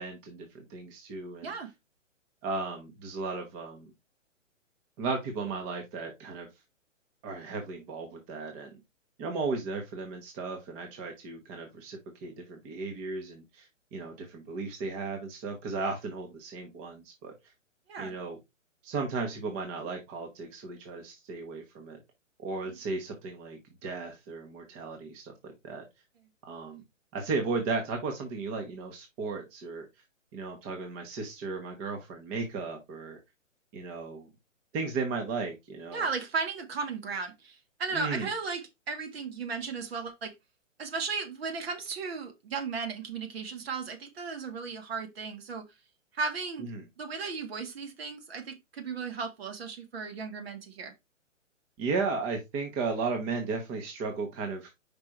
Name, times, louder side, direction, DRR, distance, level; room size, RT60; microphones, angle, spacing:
voice 1, 0.0-1.5 2.4-3.9 5.0-6.5 7.2-8.8 9.2-17.3 18.0-18.4 18.8-22.0 22.4-25.8 26.5-26.8 27.1-29.9 30.3-33.2 33.7-34.3 34.7-36.1 37.9-38.3 46.6-46.8 51.8-54.7, right 4 dB, 20° right, 1.2 m, -35 dB
voice 2, 35.9-40.3 40.8-45.6 46.1-46.7 47.0-50.9, right 4 dB, 50° right, 1.8 m, -35 dB
5.3 x 4.8 x 4.5 m
figure-of-eight pair, 125°, 38 cm